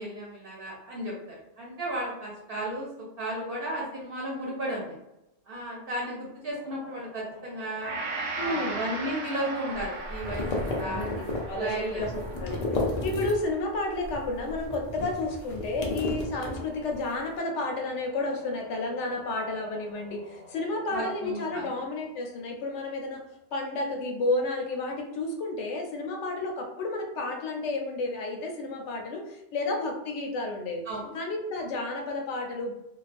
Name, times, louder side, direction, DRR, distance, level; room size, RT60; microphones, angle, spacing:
voice 1, 0.0-2.9 3.2-4.9 5.5-8.0 8.3-11.1 11.5-12.1 20.9-21.7 30.9-31.1, right 1 dB, 60° right, -4 dB, 0.8 m, -34 dB
sound 1, 6.5-12.5 16.2-21.7, left 1 dB, 10° right, 0.9 m, -51 dB
Gong, 7.8-16.1 16.6-16.7, right 3 dB, 90° right, 0.9 m, -39 dB
voice 2, 8.4-8.8 10.7-23.2 23.5-30.8 31.1-32.7, left 2 dB, 80° left, 2 dB, 0.9 m, -31 dB
sound 2, 9.7-13.6 13.9-17.1, left 2 dB, 60° left, 0.4 m, -33 dB
2.3 x 2.3 x 2.4 m, 0.89 s
omnidirectional pair, 1.2 m